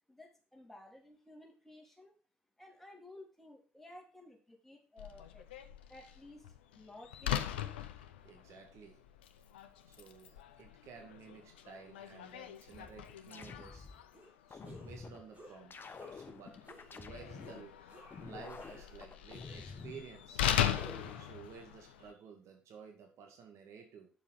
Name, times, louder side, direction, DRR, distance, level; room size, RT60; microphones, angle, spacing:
voice 1, 0.1-2.1 2.6-5.5 5.9-7.6, left 1 dB, 5° left, 0 dB, 3.2 m, -55 dB
Slam, 5.0-22.1, left 10 dB, 80° left, 0.6 m, -41 dB
voice 2, 8.1-9.0 9.9-13.9 14.5-16.6 16.9-20.5 21.1-24.1, right 6 dB, 60° right, 3 dB, 2.1 m, -54 dB
sound 1, 12.7-14.0 14.5-15.2 15.7-17.6 18.1-20.0 20.5-21.2, left 5 dB, 40° left, 1.1 m, -49 dB
sound 2, 14.1-14.3 14.6-15.0 15.3-15.6 15.9-16.3 16.6-16.9 17.4-17.6 17.9-19.0 19.3-19.9 20.4-21.3, right 1 dB, 25° right, 6.1 m, -56 dB
9.1 x 7.1 x 4.1 m, 0.35 s
figure-of-eight pair, 45°, 6 cm